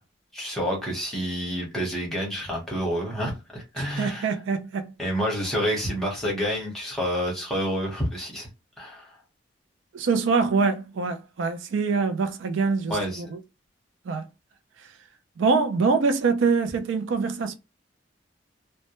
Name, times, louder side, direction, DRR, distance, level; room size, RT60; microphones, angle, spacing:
voice 1, 0.3-4.3 5.0-8.5 8.8-9.1 12.9-13.2, equal, ahead, 0.9 m, -28 dB
voice 2, 3.8-4.9 9.9-13.4 14.1-14.3 15.4-17.5, right 4 dB, 80° right, 0.4 m, -24 dB
2.1 x 2.1 x 2.9 m
head